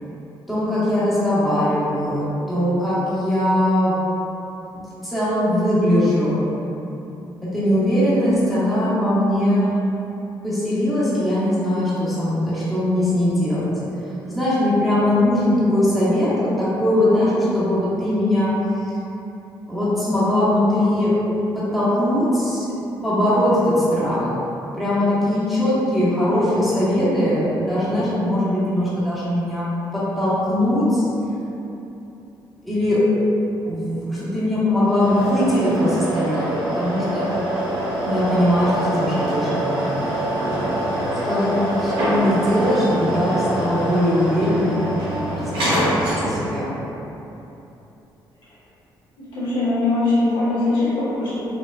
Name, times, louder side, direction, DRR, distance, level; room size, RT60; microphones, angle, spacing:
voice 1, 0.5-3.9 5.0-6.4 7.5-9.7 10.4-13.7 14.3-18.5 18.8-18.9 19.7-21.1 21.5-22.7 23.0-24.3 24.8-29.6 29.9-31.0 32.6-33.0 33.6-37.3 38.0-40.0 41.2-46.7, left 1 dB, ahead, -12 dB, 1.1 m, -20 dB
sound 1, 34.9-46.6, right 1 dB, 90° right, 1.0 m, -24 dB
voice 2, 49.3-51.5, left 2 dB, 70° left, -11 dB, 1.4 m, -21 dB
4.4 x 2.3 x 2.4 m, 3.0 s
cardioid pair, 100°, 8 cm